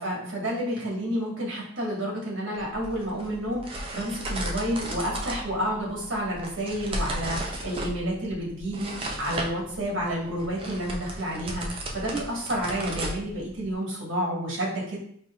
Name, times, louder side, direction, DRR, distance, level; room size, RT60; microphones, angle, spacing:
voice 1, 0.0-15.0, equal, 65° right, -3 dB, 1.4 m, -30 dB
sound 1, 2.6-13.7, right 1 dB, 25° right, 0.4 m, -35 dB
5.4 x 2.7 x 2.3 m, 0.64 s
head